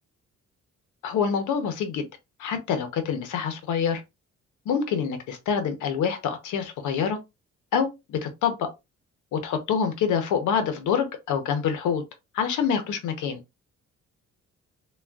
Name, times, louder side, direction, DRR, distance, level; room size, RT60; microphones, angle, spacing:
voice 1, 1.0-2.0 2.4-4.0 4.7-7.2 7.7-8.7 9.3-12.0 12.3-13.4, left 7 dB, 80° left, 0.9 m, -26 dB
3.4 x 2.4 x 2.3 m
cardioid pair, 90°, 30 cm